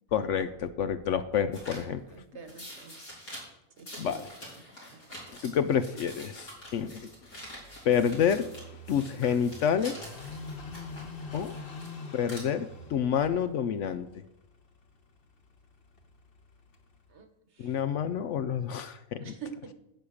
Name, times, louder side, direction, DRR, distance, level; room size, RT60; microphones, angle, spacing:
voice 1, 0.1-2.0 4.0-4.4 5.4-7.1 7.8-8.5 8.9-10.0 11.3-11.5 12.1-14.2 17.6-19.3, left 8 dB, 65° left, 11 dB, 0.8 m, -28 dB
sound 1, 1.5-1.8 2.5-3.4 3.8-8.6 8.9-11.9 12.2-12.4, equal, 80° left, 5.1 m, -46 dB
voice 2, 1.9-2.9 3.8-4.2 4.9-5.0 17.1-17.3 17.6-17.8 19.2-19.7, right 6 dB, 55° right, 8 dB, 1.4 m, -46 dB
Car passing by / Idling, 6.5-17.1, left 3 dB, 45° left, 1.2 m, -46 dB
10.5 x 8.5 x 6.4 m, 0.87 s
omnidirectional pair, 1.5 m